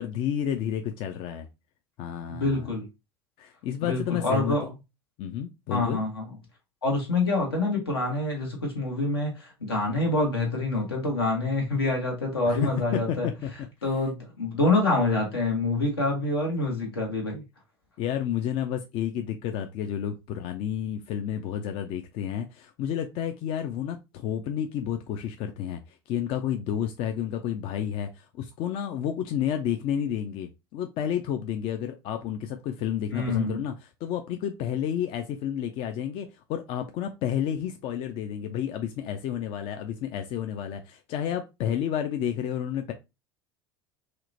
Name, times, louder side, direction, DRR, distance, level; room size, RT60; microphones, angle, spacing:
voice 1, 0.0-1.5 2.0-2.7 3.4-4.7 5.2-6.0 12.5-13.5 18.0-25.8 26.1-42.9, left 9 dB, 50° left, 0.4 m, -31 dB
voice 2, 2.3-2.9 3.8-4.7 5.7-6.3 6.8-13.3 13.8-17.4 33.1-33.6, left 2 dB, 85° left, 1.0 m, -26 dB
2.8 x 2.1 x 2.5 m
hypercardioid pair, 75°, 12 cm